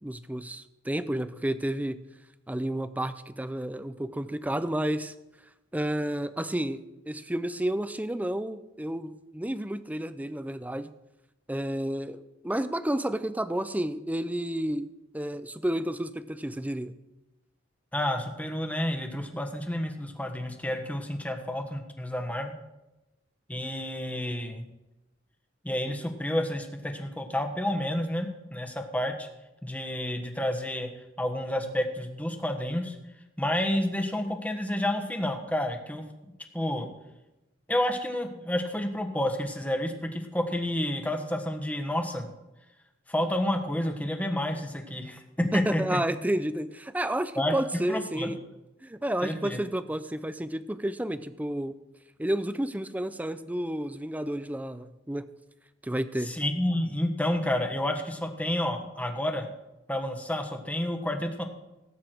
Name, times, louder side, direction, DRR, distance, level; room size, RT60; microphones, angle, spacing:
voice 1, 0.0-2.0 2.5-5.1 5.7-10.9 11.5-14.9 15.1-16.9 45.5-48.4 48.8-51.7 52.2-55.2 55.8-56.4, right 1 dB, 10° right, 13 dB, 0.6 m, -31 dB
voice 2, 17.9-22.5 23.5-24.7 25.6-29.3 29.6-30.9 31.2-33.0 33.4-36.0 36.5-36.9 37.7-42.3 43.1-46.0 47.4-47.5 47.9-48.3 49.2-49.6 56.2-59.5 59.9-61.4, left 1 dB, 10° left, 4 dB, 1.4 m, -30 dB
18.0 x 8.4 x 4.6 m, 0.97 s
head